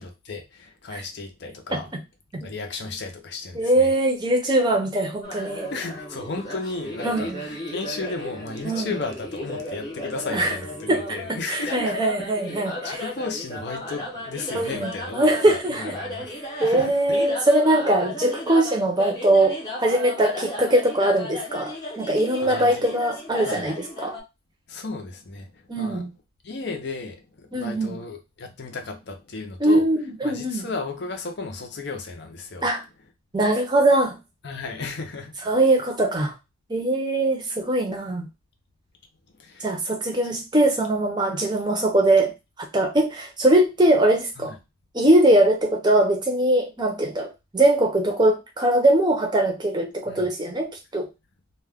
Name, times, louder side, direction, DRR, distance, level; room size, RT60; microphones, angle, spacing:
voice 1, 0.0-1.9 2.4-3.9 5.7-12.0 12.8-16.4 16.6-17.2 22.4-22.9 23.4-23.7 24.7-26.0 26.4-29.9 30.2-32.7 34.4-35.5 39.4-39.7 44.4-44.6 50.1-50.3, left 3 dB, 55° left, 0.6 m, -34 dB
voice 2, 3.5-5.7 7.0-7.4 8.6-8.9 10.3-10.5 10.9-11.0 11.3-13.0 14.5-15.9 16.6-24.1 25.7-26.1 27.5-28.0 29.6-30.7 32.6-32.8 33.3-34.2 35.5-36.3 36.7-38.3 39.6-42.3 42.7-44.5 44.9-51.1, right 1 dB, 20° right, 0.6 m, -21 dB
sound 1, 5.2-24.2, left 1 dB, 20° left, 0.8 m, -35 dB
2.3 x 2.2 x 3.4 m
head